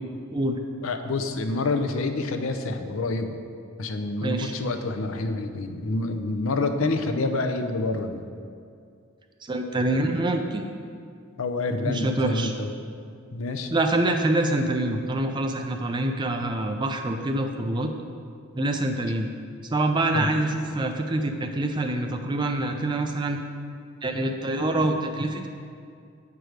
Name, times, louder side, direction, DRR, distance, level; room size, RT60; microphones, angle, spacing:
voice 1, 0.8-3.4 3.8-8.2 11.4-12.7 13.3-13.7 20.1-20.3, left 3 dB, 75° left, 7 dB, 0.5 m, -27 dB
voice 2, 4.2-4.5 9.4-10.7 11.9-12.5 13.7-17.9 18.5-19.3 19.7-23.4 24.0-25.5, right 2 dB, 20° right, 5 dB, 0.4 m, -25 dB
7.8 x 4.7 x 5.0 m, 2.3 s
head